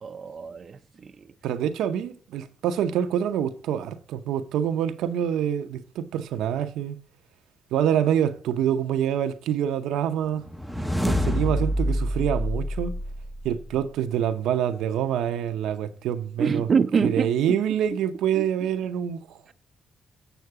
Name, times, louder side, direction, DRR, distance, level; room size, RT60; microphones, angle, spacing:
voice 1, 0.0-1.1 10.8-10.9 16.4-17.3, right 6 dB, 45° right, 0.5 m, -25 dB
voice 2, 1.4-7.0 7.7-10.4 11.1-13.0 13.4-16.7 17.0-19.2, right 9 dB, 85° right, 0.7 m, -26 dB
sound 1, 10.4-13.7, equal, ahead, 0.7 m, -27 dB
8.1 x 6.4 x 4.7 m
cardioid pair, 90°, 0 cm